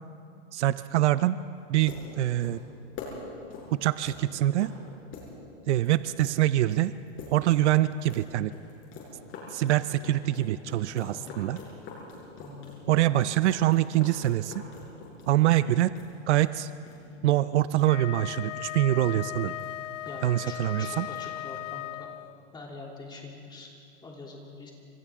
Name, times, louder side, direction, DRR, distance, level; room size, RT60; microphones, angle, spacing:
voice 1, 0.5-1.4 1.7-2.6 3.7-4.7 5.7-6.9 7.3-8.5 9.5-11.6 12.9-14.6 15.3-15.9 16.3-16.7 17.2-19.5 20.2-21.1, right 14 dB, 65° right, 14 dB, 0.7 m, -24 dB
sound 1, 1.6-21.5, left 4 dB, 35° left, 6.7 m, -47 dB
voice 2, 10.9-11.3 12.4-12.8 20.0-22.1 22.5-23.7 24.0-24.7, left 3 dB, 10° left, -1 dB, 3.0 m, -44 dB
Wind instrument woodwind instrument, 17.8-22.4, left 14 dB, 85° left, 0.5 m, -37 dB
29.5 x 26.0 x 3.7 m, 2.4 s
supercardioid pair, 150°, 37 cm